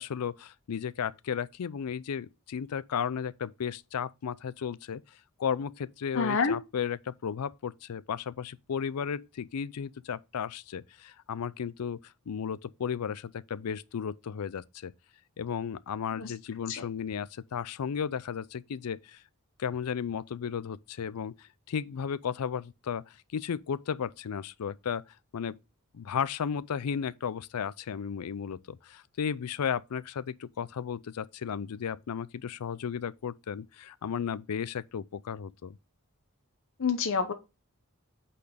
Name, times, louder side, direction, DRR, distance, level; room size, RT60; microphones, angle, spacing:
voice 1, 0.0-5.0 5.4-12.0 12.3-14.9 15.4-19.2 19.6-21.3 21.7-23.0 23.3-25.0 25.3-25.6 25.9-35.8, left 7 dB, 85° left, 0.4 m, -34 dB
voice 2, 6.1-6.6 16.2-16.3 16.7-16.9 36.8-37.3, left 5 dB, 60° left, 0.8 m, -27 dB
8.4 x 4.2 x 5.1 m
head